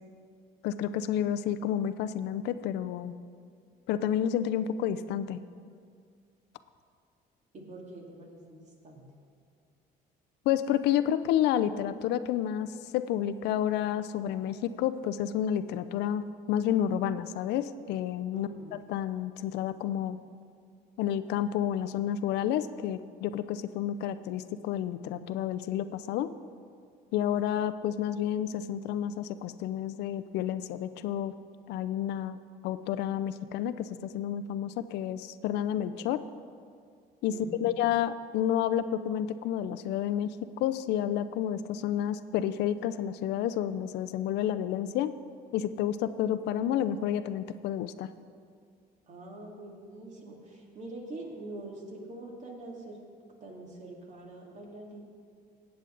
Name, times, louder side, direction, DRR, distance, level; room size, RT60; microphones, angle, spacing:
voice 1, 0.6-3.1 3.9-5.4 10.5-12.7 12.9-18.5 18.9-20.2 21.0-26.3 27.1-31.3 31.7-32.4 32.6-36.2 37.2-45.1 45.5-48.1, left 10 dB, 85° left, 12 dB, 0.5 m, -30 dB
voice 2, 7.5-9.0 18.3-18.7 37.3-37.8 49.1-53.0 53.4-55.1, right 2 dB, 45° right, -1 dB, 2.4 m, -44 dB
17.0 x 8.1 x 3.9 m, 2.2 s
cardioid pair, 110°, 17 cm